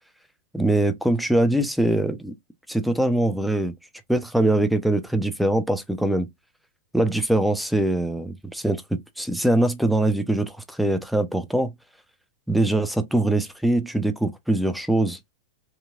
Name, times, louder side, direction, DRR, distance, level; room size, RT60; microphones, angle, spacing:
voice 1, 0.5-2.3 2.7-3.7 4.1-6.3 6.9-11.7 12.5-15.2, right 1 dB, ahead, 0.5 m, -22 dB
2.8 x 2.7 x 2.4 m
figure-of-eight pair, 95°, 0 cm